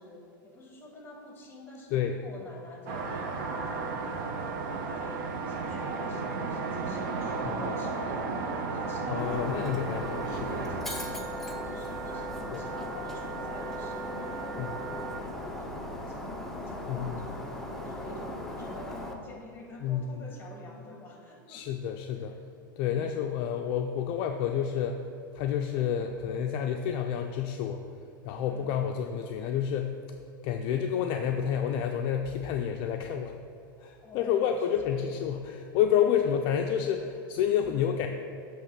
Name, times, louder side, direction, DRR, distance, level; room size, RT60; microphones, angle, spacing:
voice 1, 0.0-3.7 4.0-8.4 8.7-9.9 10.4-21.7 22.2-22.3 28.4-28.8 34.0-35.1 35.9-36.4 37.6-38.0, left 2 dB, 20° left, 1 dB, 1.4 m, -48 dB
sound 1, 2.9-10.8, right 3 dB, 60° right, 0.9 m, -34 dB
Wind instrument woodwind instrument, 3.0-15.2, right 7 dB, 80° right, 0.4 m, -41 dB
voice 2, 7.4-7.7 9.1-10.6 12.5-12.6 14.6-14.7 16.9-17.2 19.8-20.2 21.5-22.3 22.8-25.0 25.3-27.8 28.2-29.9 30.4-33.3 33.8-38.1, left 9 dB, 50° left, 5 dB, 0.4 m, -29 dB
Shatter, 9.2-19.1, left 1 dB, 5° left, 0.7 m, -38 dB
7.4 x 3.0 x 5.7 m, 2.7 s
hypercardioid pair, 110°, 11 cm